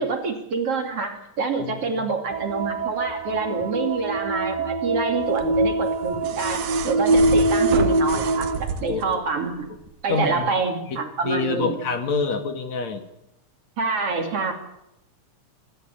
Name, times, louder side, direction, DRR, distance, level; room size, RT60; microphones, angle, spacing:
voice 1, 0.0-9.7 10.0-11.8 13.8-14.5, right 4 dB, 50° right, 5 dB, 3.5 m, -27 dB
voice 2, 1.6-2.1 8.9-9.4 10.1-10.5 10.9-11.0 11.2-13.0, left 5 dB, 60° left, 7 dB, 2.9 m, -27 dB
sound 1, 2.3-8.6, right 2 dB, 15° right, 1.8 m, -24 dB
sound 2, 5.4-9.2 10.4-10.5, right 6 dB, 80° right, 3.1 m, -29 dB
26.5 x 13.5 x 9.1 m, 0.85 s
omnidirectional pair, 3.6 m